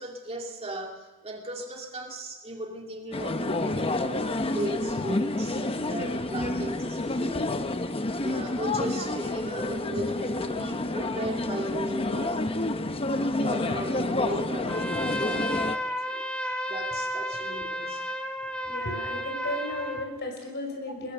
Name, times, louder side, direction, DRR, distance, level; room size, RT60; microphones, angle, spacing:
voice 1, 0.0-7.6 8.1-12.5 13.3-15.6 15.9-16.3 16.7-18.1 20.9-21.1, right 1 dB, 30° right, 2 dB, 2.4 m, -37 dB
sound 1, 3.1-15.8, left 2 dB, 25° left, 0.9 m, -29 dB
Trumpet, 14.7-20.1, equal, 5° left, 1.5 m, -32 dB
voice 2, 18.6-21.1, left 1 dB, 55° left, 2 dB, 5.9 m, -34 dB
21.0 x 21.0 x 6.6 m, 1.1 s
head